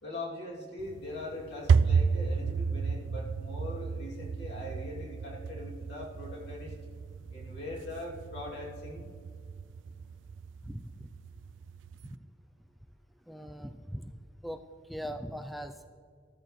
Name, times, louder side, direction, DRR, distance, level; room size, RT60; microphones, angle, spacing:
voice 1, 0.0-6.7 7.3-9.1, left 1 dB, 65° left, -3 dB, 2.7 m, -41 dB
sound 1, 0.8-12.2, right 5 dB, 75° right, 0.4 m, -32 dB
voice 2, 10.6-11.1 12.0-12.2 13.3-14.1 14.4-14.6 14.9-15.9, equal, ahead, 7 dB, 0.3 m, -40 dB
14.0 x 13.5 x 3.1 m, 2.3 s
head